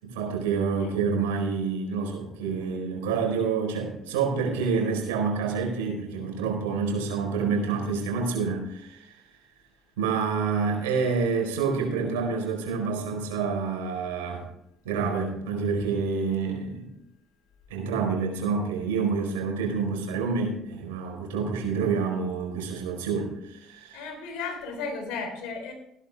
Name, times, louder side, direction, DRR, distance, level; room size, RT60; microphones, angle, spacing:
voice 1, 0.0-9.1 10.0-14.4 14.8-16.9 17.7-24.1, right 5 dB, 85° right, 1 dB, 4.3 m, -28 dB
voice 2, 23.9-25.7, left 4 dB, 75° left, 4 dB, 3.8 m, -35 dB
15.5 x 11.0 x 3.5 m, 0.82 s
hypercardioid pair, 60°, 0 cm